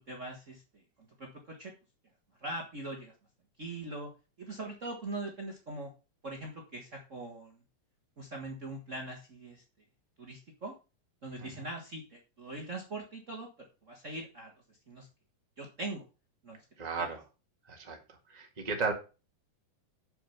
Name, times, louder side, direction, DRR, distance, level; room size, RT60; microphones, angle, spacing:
voice 1, 0.1-0.8 1.2-1.7 2.4-3.1 3.6-4.1 4.4-5.9 6.2-7.6 8.2-9.6 10.2-10.7 11.2-14.5 14.9-15.1 15.6-16.0 16.4-16.6 17.0-17.1, right 2 dB, 75° right, 0 dB, 0.7 m, -41 dB
voice 2, 16.8-17.2 17.7-18.9, right 4 dB, 30° right, 3 dB, 0.7 m, -35 dB
7.0 x 6.3 x 5.8 m, 0.30 s
omnidirectional pair, 4.1 m